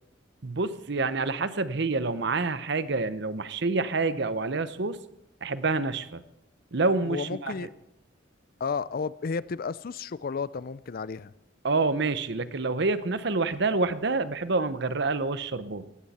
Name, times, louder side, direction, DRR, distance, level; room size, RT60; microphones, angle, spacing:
voice 1, 0.4-5.0 5.4-6.2 6.7-7.7 11.6-15.9, right 3 dB, 65° right, 13 dB, 0.9 m, -27 dB
voice 2, 7.1-7.7 8.6-11.3, left 5 dB, 50° left, 18 dB, 0.4 m, -32 dB
18.5 x 15.5 x 4.3 m, 0.84 s
head